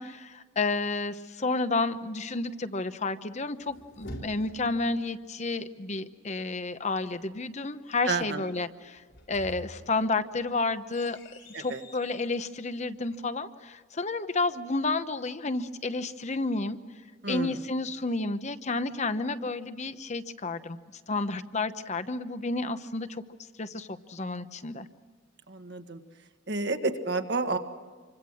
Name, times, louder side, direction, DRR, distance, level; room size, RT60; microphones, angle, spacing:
voice 1, 0.0-9.0 9.3-11.2 11.6-16.8 17.3-20.8 21.1-23.2 23.6-24.9, left 3 dB, 35° left, 11 dB, 0.9 m, -31 dB
sound 1, 3.4-4.9 9.0-12.2, left 1 dB, 75° left, 5.0 m, -46 dB
voice 2, 8.1-8.4 11.5-11.8 17.2-17.7 25.5-26.0 26.5-27.6, right 3 dB, 60° right, 6 dB, 1.7 m, -30 dB
27.5 x 25.0 x 6.3 m, 1.5 s
head